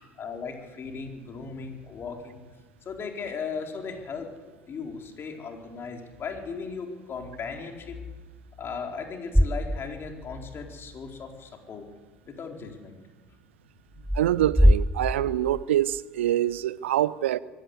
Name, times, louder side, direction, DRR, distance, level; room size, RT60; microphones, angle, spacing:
voice 1, 0.2-2.4 2.8-4.3 4.7-8.0 8.6-11.8 12.3-13.0, left 5 dB, 35° left, 4.3 m, -37 dB
sound 1, 9.3-10.3 10.7-10.8 13.9-16.0, equal, ahead, 0.7 m, -23 dB
voice 2, 14.1-17.4, right 12 dB, 70° right, 0.6 m, -25 dB
24.5 x 15.5 x 8.1 m
figure-of-eight pair, 65°, 7 cm